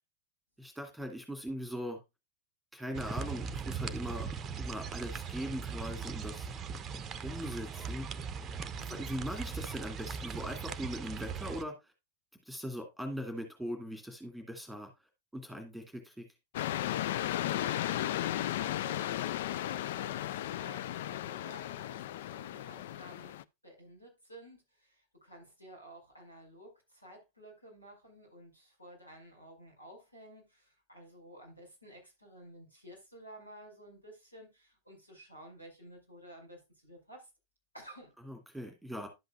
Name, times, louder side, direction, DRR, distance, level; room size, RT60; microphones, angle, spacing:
voice 1, 0.6-2.0 2.7-4.3 4.6-6.5 7.2-8.1 8.9-11.7 12.5-14.9 15.3-16.3 38.3-39.1, equal, ahead, 2.4 m, -40 dB
sound 1, 2.9-11.6, right 6 dB, 25° right, 0.8 m, -39 dB
sound 2, 16.5-23.4, left 13 dB, 55° left, 0.4 m, -35 dB
voice 2, 17.0-37.3 37.7-38.2, right 1 dB, 85° left, 5.5 m, -53 dB
11.5 x 7.9 x 2.4 m
figure-of-eight pair, 90°, 0 cm